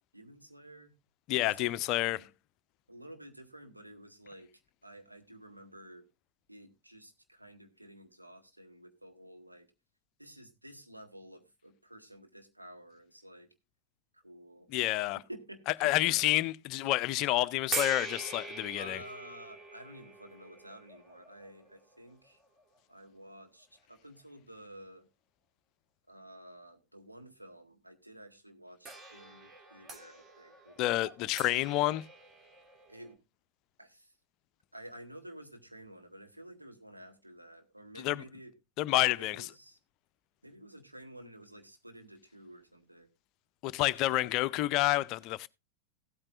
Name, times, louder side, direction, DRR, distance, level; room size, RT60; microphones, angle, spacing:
voice 1, 0.1-0.9 1.4-2.3 2.9-4.5 4.8-6.1 6.5-9.7 10.2-13.5 14.1-14.8 15.2-16.3 16.8-16.9 18.7-22.4 22.9-25.1 26.1-31.5 32.9-33.2 33.8-34.1 34.7-38.5 39.2-39.8 40.4-43.1 44.0-44.6, right 1 dB, 85° right, 1.6 m, -51 dB
voice 2, 1.3-2.2 14.7-15.2 15.8-19.0 30.8-32.0 38.0-38.2 38.8-39.5 43.6-45.5, left 16 dB, 40° left, 0.5 m, -29 dB
sound 1, 17.7-22.8 23.6-23.7 28.8-33.1, right 2 dB, 20° right, 1.7 m, -43 dB
16.0 x 8.8 x 2.5 m
figure-of-eight pair, 90°, 0 cm